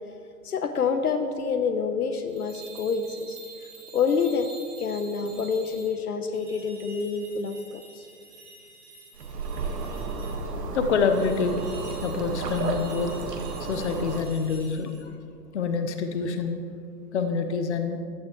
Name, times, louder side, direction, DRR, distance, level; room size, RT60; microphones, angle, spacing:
voice 1, 0.4-3.4 3.9-4.5 4.8-8.0, left 5 dB, 65° left, 8 dB, 1.0 m, -27 dB
sound 1, 2.3-5.9 6.3-10.4 11.0-15.0, right 3 dB, 25° right, 2.6 m, -48 dB
sound 2, 9.1-14.2, right 3 dB, 75° right, 1.8 m, -32 dB
voice 2, 10.7-11.6 12.0-13.1 13.6-15.1 15.5-16.6 17.1-18.0, left 5 dB, 45° left, 6 dB, 1.1 m, -26 dB
15.5 x 12.0 x 3.1 m, 2.3 s
hypercardioid pair, 160°, 48 cm